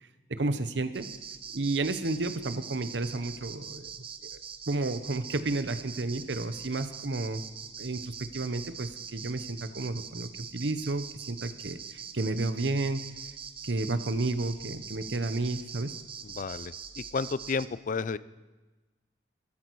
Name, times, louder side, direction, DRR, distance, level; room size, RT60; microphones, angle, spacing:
voice 1, 0.3-1.1 1.5-3.9 4.7-7.4 7.8-13.0 13.6-15.9, right 2 dB, 85° right, 11 dB, 0.9 m, -31 dB
sound 1, 0.9-17.7, right 7 dB, 30° right, 0.7 m, -43 dB
voice 2, 16.2-18.2, left 4 dB, 45° left, 17 dB, 0.4 m, -32 dB
14.5 x 13.5 x 4.7 m, 1.2 s
head